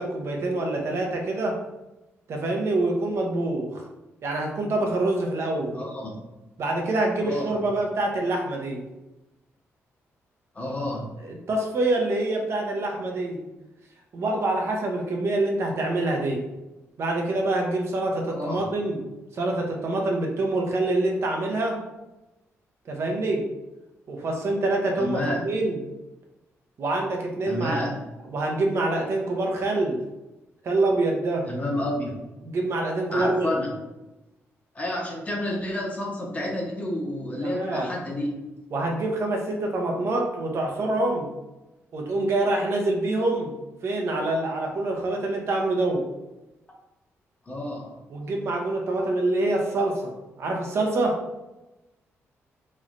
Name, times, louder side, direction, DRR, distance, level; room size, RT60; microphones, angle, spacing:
voice 1, 0.0-1.6 2.3-3.8 4.2-5.8 6.6-8.9 11.2-13.4 14.1-16.4 17.0-19.0 19.3-21.8 22.9-23.5 24.1-25.8 26.8-27.9 28.3-30.0 30.6-31.5 32.4-33.5 37.4-37.9 38.7-41.3 41.9-43.5 43.8-46.1 48.1-51.2, right 2 dB, 55° right, 1 dB, 0.7 m, -26 dB
voice 2, 5.7-6.2 7.2-7.5 10.5-11.2 18.3-18.6 25.0-25.4 27.5-28.0 31.5-32.1 33.1-33.7 34.7-38.3 47.5-48.0, left 1 dB, 30° left, -2 dB, 0.9 m, -30 dB
3.1 x 3.1 x 2.5 m, 1.0 s
cardioid pair, 95°, 5 cm